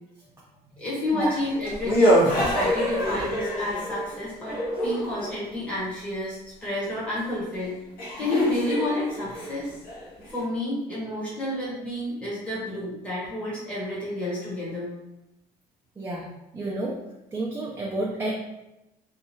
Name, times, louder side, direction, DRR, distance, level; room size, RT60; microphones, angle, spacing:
voice 1, 0.8-7.7 8.2-9.7 10.3-14.9, left 1 dB, 5° left, -8 dB, 1.0 m, -30 dB
sound 1, 1.2-5.4 7.3-7.4 8.0-10.4, equal, 60° left, 0.9 m, -26 dB
voice 2, 16.0-17.0 17.3-18.3, right 2 dB, 15° right, -3 dB, 0.4 m, -30 dB
2.8 x 2.3 x 2.7 m, 0.92 s
cardioid pair, 110°, 17 cm